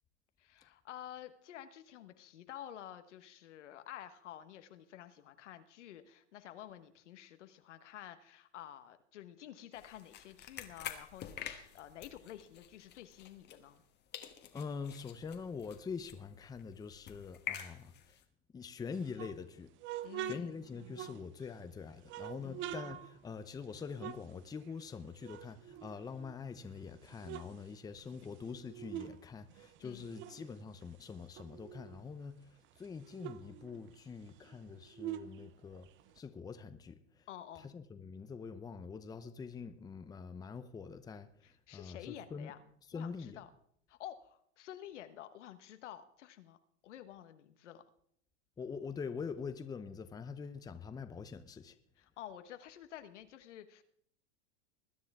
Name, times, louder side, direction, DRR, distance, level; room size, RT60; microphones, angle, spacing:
voice 1, 0.4-13.8 20.0-20.6 22.4-22.7 29.8-30.1 37.3-37.7 41.4-42.6 42.9-43.5 43.9-46.6 46.8-47.8 52.0-53.8, left 11 dB, 80° left, 1.3 m, -50 dB
sound 1, 9.7-13.9 14.1-18.2, left 10 dB, 30° left, 1.3 m, -48 dB
voice 2, 14.5-18.2 18.5-19.7 20.2-32.5 32.8-35.9 36.2-37.2 37.6-41.3 41.7-42.5 42.9-43.4 48.6-51.7, left 5 dB, 10° left, 0.7 m, -44 dB
sound 2, 18.9-21.6 22.0-24.9 25.2-26.6 26.9-29.2 29.5-32.1 32.4-32.5 32.8-36.2, right 12 dB, 35° right, 0.7 m, -46 dB
20.5 x 9.8 x 3.6 m
hypercardioid pair, 125°, 35 cm